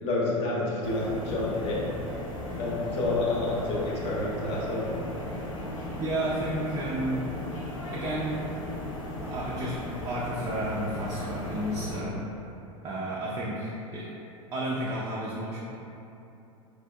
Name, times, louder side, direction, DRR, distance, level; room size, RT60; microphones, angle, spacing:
voice 1, 0.0-1.8 2.6-4.9, left 2 dB, 35° left, -5 dB, 0.8 m, -29 dB
sound 1, 0.8-12.0, left 1 dB, 70° left, 0.6 m, -36 dB
voice 2, 6.0-7.3 7.9-8.6 9.2-9.8 10.0-12.2 12.8-14.1 14.5-15.6, right 1 dB, 20° right, -5 dB, 0.3 m, -32 dB
4.5 x 2.4 x 2.2 m, 2.9 s
figure-of-eight pair, 80°, 17 cm